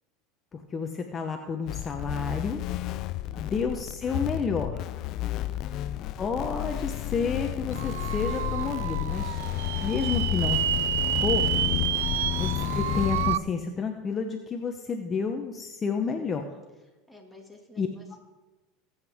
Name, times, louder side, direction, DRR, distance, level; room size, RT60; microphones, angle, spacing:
voice 1, 0.5-2.6 3.4-4.8 6.2-9.4 9.8-10.6 11.2-11.5 12.3-16.4 17.8-17.9, left 5 dB, 25° left, 4 dB, 0.9 m, -30 dB
sound 1, 1.7-13.4, left 14 dB, 50° left, 0.4 m, -31 dB
voice 2, 3.0-3.5 5.4-5.9 11.9-12.4 17.1-18.2, left 1 dB, 5° right, 2 dB, 2.1 m, -52 dB
sound 2, 7.7-13.4, right 13 dB, 90° right, 0.3 m, -29 dB
20.0 x 8.1 x 3.6 m, 1.1 s
supercardioid pair, 130°, 0 cm